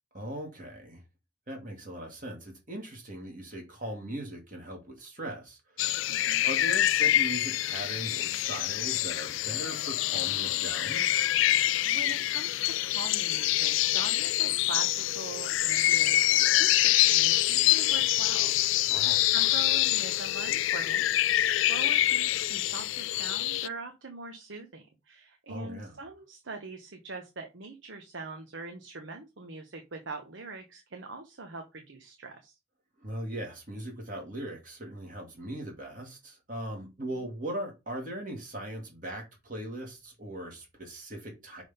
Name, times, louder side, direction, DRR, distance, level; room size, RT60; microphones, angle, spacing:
voice 1, 0.1-1.0 1.5-6.1 6.4-11.1 18.9-19.3 25.5-26.0 33.0-41.6, right 1 dB, 40° right, 1.8 m, -39 dB
sound 1, 5.8-23.7, left 14 dB, 75° left, 0.3 m, -26 dB
voice 2, 6.1-6.5 11.8-18.9 19.3-21.4 21.7-32.6 36.7-36.9, right 3 dB, 70° right, 1.0 m, -43 dB
6.1 x 3.5 x 5.5 m
head